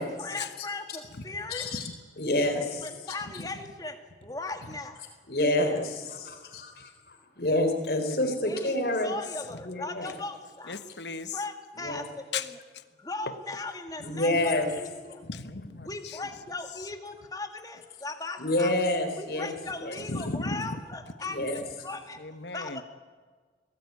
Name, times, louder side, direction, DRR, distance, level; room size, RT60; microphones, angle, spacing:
voice 1, 0.0-1.7 2.8-4.0 4.2-5.0 8.5-8.7 9.0-10.8 11.3-12.6 13.0-15.2 15.8-18.7 19.2-22.2 22.5-22.8, left 3 dB, 20° left, 2.0 m, -38 dB
voice 2, 1.5-1.9 2.2-3.2 5.3-6.7 7.4-9.1 9.6-10.1 11.8-12.0 14.0-14.7 15.0-15.2 18.4-19.5 19.8-20.0 21.2-21.6, left 1 dB, 55° left, 3.9 m, -28 dB
voice 3, 8.0-8.5 9.5-9.6 10.7-11.4 12.3-12.5 13.3-13.4 15.2-16.2 20.1-20.8 22.2-22.8, left 3 dB, 75° left, 1.3 m, -36 dB
23.5 x 18.5 x 9.7 m
head